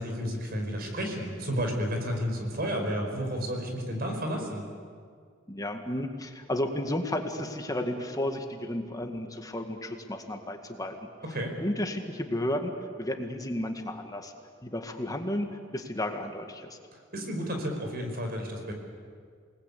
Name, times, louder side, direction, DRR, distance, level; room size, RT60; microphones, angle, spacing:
voice 1, 0.0-4.7 11.2-11.6 16.9-18.7, equal, 50° right, 3 dB, 4.9 m, -32 dB
voice 2, 5.5-11.0 11.6-12.7 13.0-14.3 14.6-15.5 15.7-16.8, left 1 dB, 20° left, 5 dB, 2.0 m, -32 dB
28.0 x 20.0 x 8.4 m, 2.1 s
head